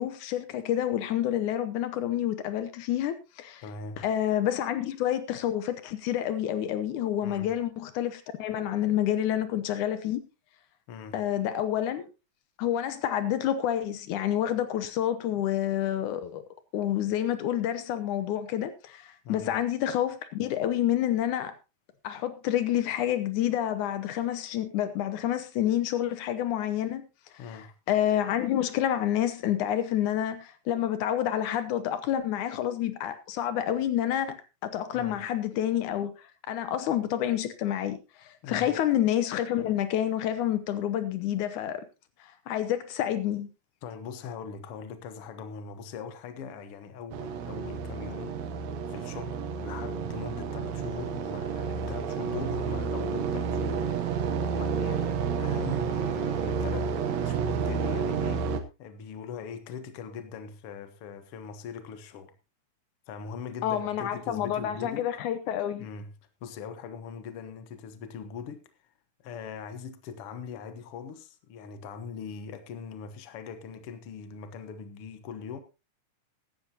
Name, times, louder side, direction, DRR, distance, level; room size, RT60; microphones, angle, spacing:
voice 1, 0.0-3.6 4.0-10.2 11.1-12.1 12.6-16.4 16.7-21.6 22.0-27.0 27.5-27.6 27.9-34.4 34.6-36.1 36.5-41.9 42.2-43.5 63.6-65.9, left 11 dB, 80° left, 2.3 m, -28 dB
voice 2, 3.6-4.0 7.2-7.5 10.9-11.2 19.2-19.5 27.4-27.7 34.9-35.2 38.4-38.7 43.8-48.4 48.9-56.9 57.2-58.5 58.8-62.3 63.1-65.1 65.8-66.1 66.4-68.7 69.2-75.6, left 6 dB, 55° left, 1.9 m, -41 dB
sound 1, 47.1-58.6, right 6 dB, 65° right, 2.2 m, -30 dB
15.5 x 12.0 x 2.9 m
omnidirectional pair, 3.5 m